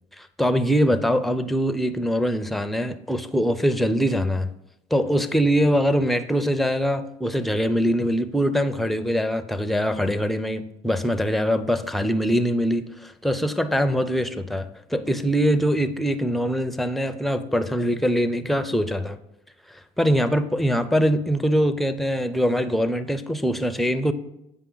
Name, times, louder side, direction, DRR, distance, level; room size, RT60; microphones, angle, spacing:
voice 1, 0.4-4.5 4.9-19.2 20.0-24.1, equal, ahead, 10 dB, 0.5 m, -23 dB
8.2 x 5.2 x 3.9 m, 0.85 s
supercardioid pair, 90°, 14 cm